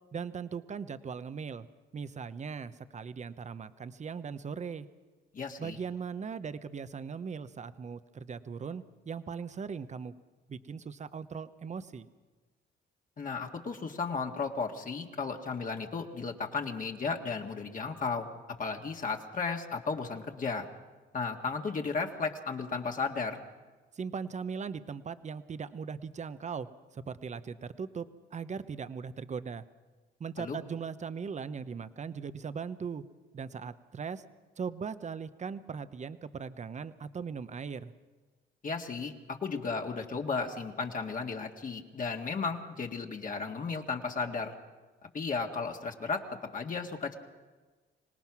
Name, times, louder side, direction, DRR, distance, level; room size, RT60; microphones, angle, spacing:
voice 1, 0.1-1.7 1.9-4.9 5.6-10.1 10.5-12.1 23.9-26.7 26.9-29.6 30.2-33.0 33.3-34.2 34.6-37.9, right 6 dB, 35° right, 12 dB, 0.9 m, -39 dB
voice 2, 5.3-5.8 13.2-18.3 18.6-20.7 21.1-23.4 30.4-30.6 38.6-44.5 45.1-46.2 46.5-47.2, left 4 dB, 40° left, 2 dB, 1.9 m, -34 dB
25.5 x 18.5 x 6.1 m, 1.3 s
cardioid pair, 90°, 20 cm